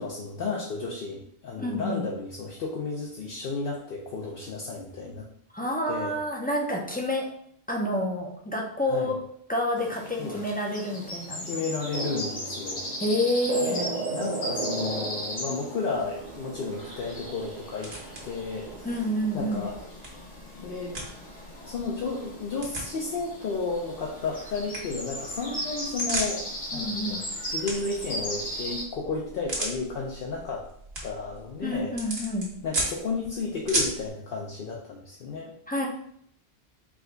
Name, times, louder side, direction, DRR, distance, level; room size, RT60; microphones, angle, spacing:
voice 1, 0.0-5.3 5.9-6.1 8.9-9.2 10.2-10.4 11.4-12.9 13.6-17.9 18.2-19.0 19.3-19.9 20.6-21.0 21.6-26.4 26.7-27.2 27.5-30.7 31.0-32.2 32.6-35.5, left 4 dB, 65° left, -2 dB, 0.8 m, -33 dB
voice 2, 1.6-2.0 5.5-7.3 7.7-9.2 9.5-11.5 13.0-13.8 18.8-19.6 26.7-27.2 31.6-32.5 35.7-35.9, left 1 dB, 10° left, -1 dB, 0.4 m, -28 dB
sound 1, 9.8-28.8, equal, 50° left, 1.3 m, -37 dB
sound 2, 11.9-19.9, right 4 dB, 50° right, 0.7 m, -37 dB
sound 3, 15.9-34.1, right 1 dB, 75° right, 1.5 m, -38 dB
4.9 x 2.2 x 3.8 m, 0.66 s
omnidirectional pair, 1.0 m